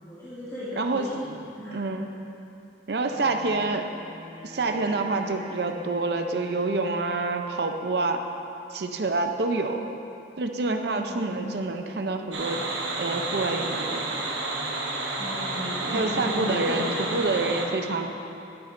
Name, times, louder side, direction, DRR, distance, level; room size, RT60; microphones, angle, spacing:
voice 1, 0.0-1.8 11.1-11.5 15.2-17.2, left 1 dB, 20° left, -16 dB, 2.0 m, -34 dB
voice 2, 0.8-1.1 1.7-2.1 2.9-3.9 4.4-8.2 8.7-9.8 10.4-12.6 13.0-14.1 15.9-16.9 17.1-18.2, right 3 dB, 65° right, 5 dB, 0.6 m, -27 dB
Wind instrument woodwind instrument, 3.0-7.0, right 1 dB, 25° right, 0.8 m, -46 dB
sound 1, 12.3-17.7, right 2 dB, 85° right, 1.2 m, -30 dB
11.5 x 9.5 x 2.6 m, 2.8 s
head